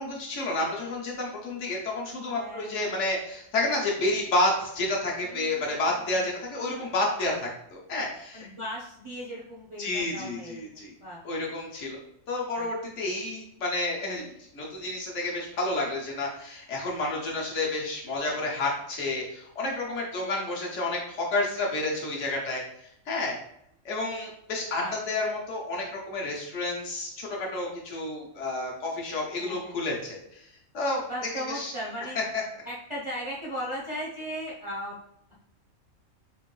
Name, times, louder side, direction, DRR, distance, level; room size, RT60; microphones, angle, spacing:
voice 1, 0.0-7.5 7.9-8.5 9.8-10.9 11.2-12.0 12.3-22.6 23.1-23.4 23.8-31.0 31.5-31.7 32.3-32.4, left 2 dB, 65° left, -2 dB, 1.2 m, -30 dB
voice 2, 2.3-2.9 5.2-6.3 7.2-7.4 8.3-11.2 12.5-12.7 13.0-13.2 20.2-20.7 24.8-24.9 29.4-29.8 31.1-32.2 32.7-35.0, equal, 35° right, -6 dB, 0.5 m, -38 dB
3.6 x 2.5 x 3.1 m, 0.76 s
omnidirectional pair, 1.4 m